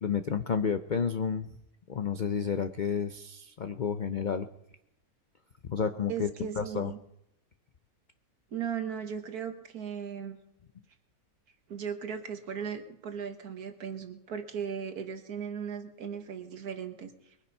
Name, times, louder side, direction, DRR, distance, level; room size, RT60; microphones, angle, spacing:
voice 1, 0.0-1.5 1.9-4.5 5.6-6.3 6.6-6.9, left 6 dB, 60° left, 9 dB, 0.4 m, -30 dB
voice 2, 6.1-7.0 8.5-10.4 11.7-17.1, right 7 dB, 75° right, 7 dB, 1.7 m, -37 dB
22.0 x 8.9 x 5.5 m, 0.83 s
omnidirectional pair, 1.6 m